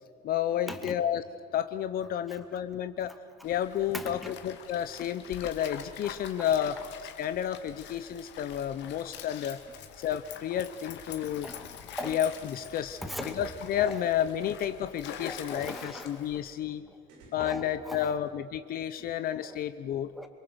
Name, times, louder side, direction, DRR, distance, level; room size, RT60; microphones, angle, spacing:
voice 1, 0.2-1.2 1.5-3.1 3.4-6.8 7.2-9.6 10.0-11.5 12.0-13.0 13.4-16.8 17.3-20.1, left 10 dB, 50° left, 11 dB, 0.7 m, -31 dB
Stream, 3.4-16.5, left 8 dB, 70° left, 2.2 m, -45 dB
voice 2, 3.9-4.3 6.4-6.5 11.4-12.2 13.0-13.4 13.8-14.0 15.2-16.2 16.9-17.0 17.4-18.2 19.4-19.6 20.1-20.3, equal, ahead, 4 dB, 2.3 m, -40 dB
sound 1, 11.1-11.4 12.6-12.7 13.1-14.5 15.1-15.4 16.6-16.7 17.1-18.2, right 4 dB, 90° right, 7.5 m, -52 dB
27.0 x 23.0 x 8.0 m, 2.4 s
cardioid pair, 145°, 19 cm